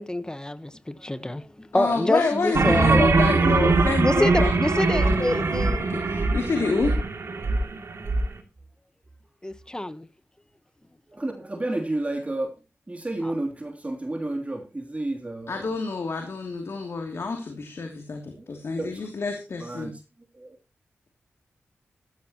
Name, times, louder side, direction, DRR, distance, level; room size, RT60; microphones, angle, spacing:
voice 1, 0.0-3.1 4.0-5.9 9.4-10.1 13.2-13.3, left 1 dB, 15° left, 1.2 m, -27 dB
voice 2, 1.7-5.5 5.9-6.9 15.5-19.9, left 4 dB, 65° left, 2.8 m, -28 dB
sound 1, 2.5-8.2, right 3 dB, 65° right, 2.8 m, -22 dB
voice 3, 2.6-3.6 11.1-12.5 12.9-15.7 18.4-18.5 18.8-19.0 19.6-19.9 20.4-20.6, right 2 dB, 30° right, 3.1 m, -31 dB
14.5 x 13.5 x 3.0 m
cardioid pair, 45°, 5 cm